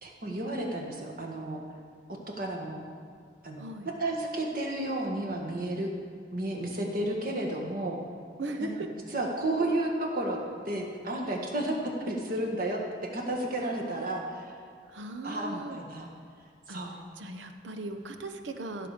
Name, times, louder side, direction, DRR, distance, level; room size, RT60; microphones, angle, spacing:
voice 1, 0.0-1.6 2.4-2.8 3.4-5.9 6.3-8.0 8.6-8.9 9.1-10.4 10.6-11.8 12.1-12.8 13.1-14.4 15.2-16.1 16.7-17.0, right 1 dB, 50° right, 0 dB, 1.8 m, -32 dB
voice 2, 3.6-3.9 8.4-8.9 14.9-15.8 16.7-16.8 17.2-18.9, right 2 dB, 85° right, 7 dB, 0.8 m, -38 dB
16.0 x 6.7 x 5.0 m, 2.2 s
head